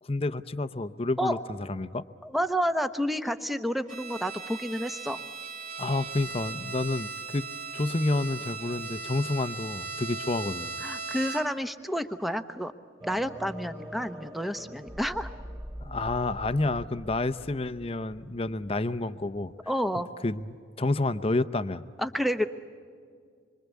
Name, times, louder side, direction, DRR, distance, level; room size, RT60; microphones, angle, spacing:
voice 1, 0.0-2.0 5.8-7.5 7.7-10.8 15.8-19.5 20.2-20.4 20.8-21.8, left 2 dB, 30° left, 11 dB, 0.7 m, -29 dB
voice 2, 2.2-5.2 10.8-12.7 13.0-15.3 19.7-20.1 22.0-22.5, equal, ahead, 9 dB, 0.9 m, -30 dB
Bowed string instrument, 3.9-11.7, right 4 dB, 40° right, 2.1 m, -38 dB
sound 1, 13.0-18.7, equal, 15° right, 2.8 m, -43 dB
26.5 x 24.5 x 8.3 m, 2.1 s
head